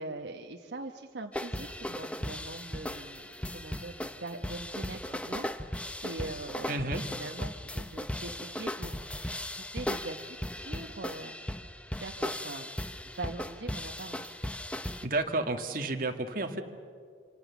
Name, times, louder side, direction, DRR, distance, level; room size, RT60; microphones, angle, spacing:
voice 1, 0.0-3.2 3.5-5.5 6.0-8.9 9.2-11.3 12.0-12.7 13.1-14.4, right 2 dB, 85° right, 3 dB, 1.1 m, -42 dB
sound 1, 1.3-15.1, left 1 dB, 5° left, 0.6 m, -37 dB
voice 2, 6.7-7.0 15.0-16.6, right 2 dB, 50° right, 4 dB, 1.8 m, -31 dB
26.5 x 26.0 x 7.1 m, 2.1 s
head